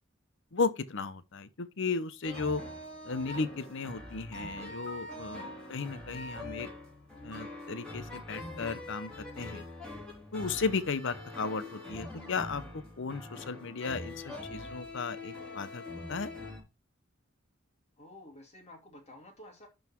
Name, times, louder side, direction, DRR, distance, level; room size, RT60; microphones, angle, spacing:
voice 1, 0.5-2.6 3.0-6.7 7.2-9.6 10.3-15.8 16.1-16.3, left 4 dB, 65° left, 0.8 m, -35 dB
sound 1, 2.2-16.6, left 1 dB, 5° left, 3.2 m, -43 dB
voice 2, 5.4-5.7 18.0-19.7, left 1 dB, 35° left, 2.7 m, -52 dB
11.0 x 4.0 x 4.5 m
head